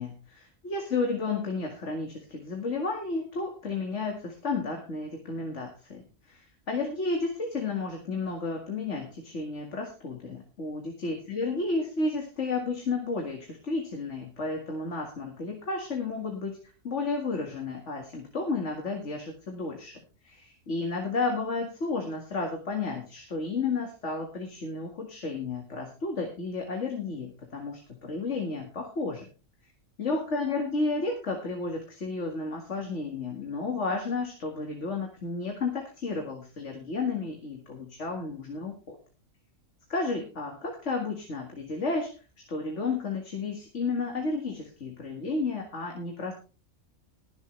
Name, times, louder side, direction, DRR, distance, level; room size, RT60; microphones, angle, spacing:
voice 1, 0.0-16.6 16.8-29.3 30.0-39.0 39.9-42.1 42.5-46.3, left 3 dB, 65° left, 2 dB, 2.2 m, -32 dB
21.5 x 7.5 x 3.3 m, 0.34 s
omnidirectional pair, 1.3 m